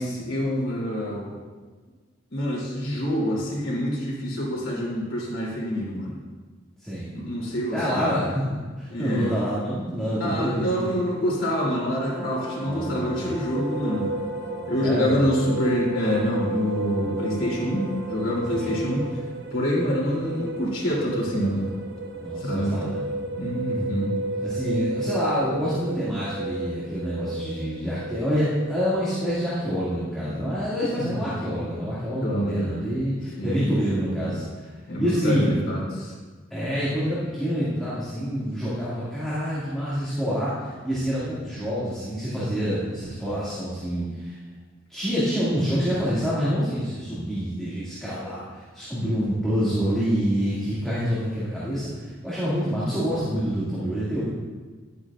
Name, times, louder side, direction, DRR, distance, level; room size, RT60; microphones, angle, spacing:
voice 1, 0.0-1.4 2.3-6.2 7.1-8.2 8.9-9.3 10.2-14.1 14.7-19.2 19.5-21.7 22.4-22.8 23.4-24.2 31.0-31.2 32.2-32.7 33.4-33.6 34.9-36.1 49.0-49.1, equal, 85° left, -4 dB, 2.8 m, -26 dB
voice 2, 6.8-7.2 7.7-8.4 8.8-10.8 12.6-13.4 14.8-15.2 18.3-18.4 18.7-18.8 22.2-23.0 24.4-34.7 35.0-35.6 36.5-44.4 44.9-54.2, equal, 5° left, -12 dB, 2.0 m, -27 dB
Brass instrument, 11.5-19.2, right 1 dB, 25° left, 1.3 m, -40 dB
sound 1, 13.5-30.8, right 2 dB, 55° right, 0.8 m, -33 dB
11.5 x 8.6 x 2.4 m, 1.4 s
head